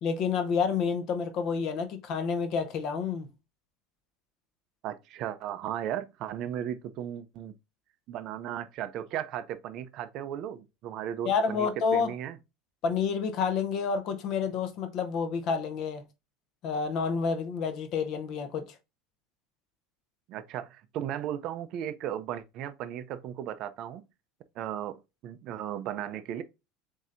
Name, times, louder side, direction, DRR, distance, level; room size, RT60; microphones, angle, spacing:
voice 1, 0.0-3.3 11.2-12.1 12.8-16.0 16.6-18.7, left 5 dB, 40° left, 0.7 m, -29 dB
voice 2, 4.8-7.5 8.1-12.4 20.3-24.0 24.6-26.4, right 10 dB, 40° right, 0.4 m, -36 dB
7.4 x 2.7 x 2.5 m
supercardioid pair, 160°, 0 cm